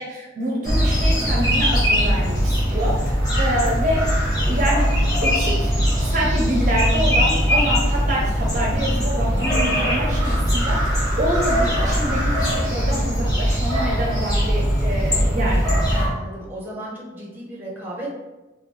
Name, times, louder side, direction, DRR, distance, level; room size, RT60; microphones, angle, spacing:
voice 1, 0.0-4.1 4.5-5.7 6.0-15.8, equal, 45° right, -3 dB, 0.6 m, -26 dB
sound 1, 0.6-16.1, equal, 20° left, 1.1 m, -20 dB
voice 2, 16.0-18.1, right 1 dB, 10° right, -5 dB, 0.8 m, -35 dB
3.3 x 2.3 x 3.2 m, 1.1 s
head